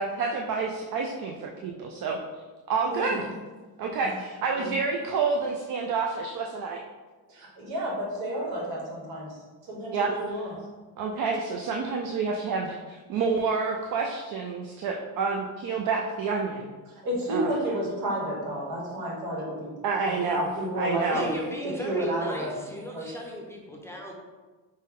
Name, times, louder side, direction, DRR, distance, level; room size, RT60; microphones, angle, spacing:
voice 1, 0.0-2.2 2.7-3.2 3.8-6.8 9.9-10.1 11.0-16.7 17.3-17.5 19.8-20.5 20.8-21.3, right 4 dB, 65° right, 0 dB, 0.5 m, -28 dB
voice 2, 2.9-3.3 4.0-4.1 4.5-4.7 7.3-10.5 16.9-19.7 20.0-21.4 21.8-22.6 22.9-23.1, right 1 dB, 90° right, -3 dB, 1.4 m, -31 dB
voice 3, 21.1-24.1, equal, 5° left, -1 dB, 0.5 m, -36 dB
5.2 x 2.2 x 3.5 m, 1.3 s
cardioid pair, 130°, 36 cm